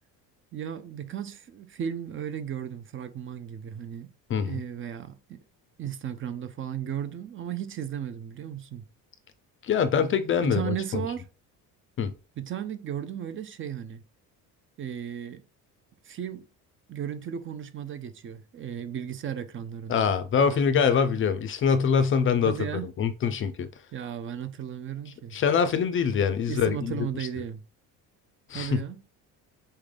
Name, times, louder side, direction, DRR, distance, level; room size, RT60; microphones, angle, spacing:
voice 1, 0.5-4.1 4.5-5.4 5.8-8.8 10.4-11.2 12.4-14.0 14.8-15.4 16.0-16.5 16.9-20.1 22.4-22.9 23.9-25.4 26.5-27.6 28.5-29.0, right 9 dB, 35° right, 0.5 m, -35 dB
voice 2, 4.3-4.6 9.6-11.0 12.0-12.1 19.9-22.5 23.0-23.7 25.3-26.9 28.5-28.8, left 6 dB, 35° left, 0.4 m, -24 dB
4.3 x 3.7 x 3.3 m
cardioid pair, 145°, 36 cm